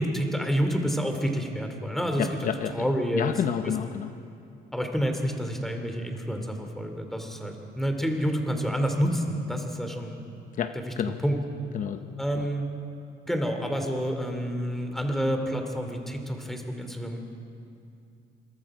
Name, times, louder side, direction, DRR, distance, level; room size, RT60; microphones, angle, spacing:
voice 1, 0.0-2.5 2.7-3.3 4.7-10.2 10.7-10.8 11.2-11.4 12.2-12.6 13.3-17.2, equal, ahead, 4 dB, 2.9 m, -28 dB
voice 2, 2.2-2.9 3.1-4.1 10.6-11.2 11.7-12.5, left 9 dB, 50° left, 8 dB, 0.8 m, -30 dB
26.5 x 23.0 x 5.0 m, 2.5 s
cardioid pair, 110°, 17 cm